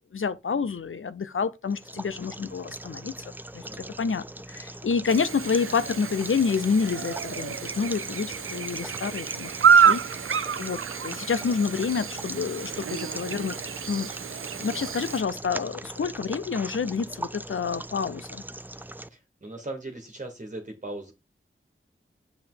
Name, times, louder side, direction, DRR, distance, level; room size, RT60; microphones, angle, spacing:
voice 1, 0.0-3.1 3.5-3.7 4.0-13.6 13.9-14.1 14.6-18.4, left 5 dB, 75° left, 0.7 m, -28 dB
sound 1, 1.7-19.1, right 1 dB, 10° right, 0.4 m, -40 dB
voice 2, 3.6-3.9 14.7-15.0 19.0-21.1, right 2 dB, 35° right, 1.7 m, -39 dB
Chirp tweet / Buzz, 5.1-15.2, right 7 dB, 80° right, 0.5 m, -27 dB
8.4 x 5.7 x 3.9 m
wide cardioid pair, 75°, 21 cm